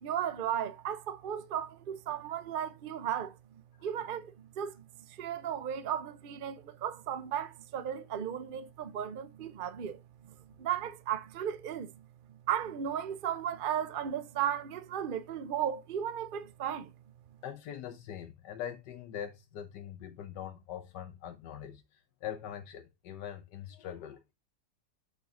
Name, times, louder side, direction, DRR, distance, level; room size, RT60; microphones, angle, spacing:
voice 1, 0.0-3.4 3.8-4.8 5.1-10.0 10.6-11.9 12.5-16.9, right 9 dB, 65° right, 0.5 m, -35 dB
voice 2, 17.4-24.3, left 9 dB, 90° left, 1.4 m, -43 dB
6.8 x 6.4 x 2.5 m
omnidirectional pair, 1.8 m